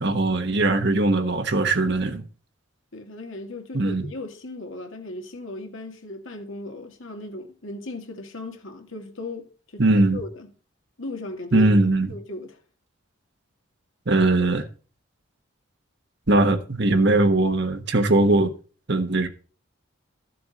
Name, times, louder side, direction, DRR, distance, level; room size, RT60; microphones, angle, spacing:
voice 1, 0.0-2.2 3.7-4.1 9.8-10.2 11.5-12.1 14.1-14.6 16.3-18.5 18.9-19.3, right 2 dB, 55° right, 1.3 m, -20 dB
voice 2, 2.9-9.5 9.7-9.9 10.1-10.5 11.0-12.6, left 2 dB, 70° left, 2.1 m, -37 dB
14.0 x 6.9 x 4.2 m
head